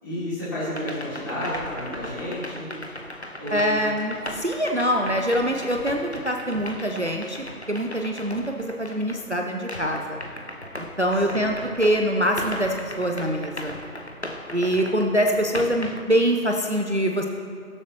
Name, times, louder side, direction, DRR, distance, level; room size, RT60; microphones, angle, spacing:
voice 1, 0.0-2.7 3.4-3.6 11.2-11.6, left 1 dB, 15° left, -14 dB, 3.4 m, -31 dB
sound 1, 0.7-9.3 9.7-16.0, left 1 dB, 45° left, 0.8 m, -38 dB
voice 2, 3.5-10.2 11.0-13.7 14.5-17.3, equal, 45° right, 2 dB, 0.7 m, -24 dB
22.5 x 7.5 x 3.0 m, 2.1 s
figure-of-eight pair, 170°, 47 cm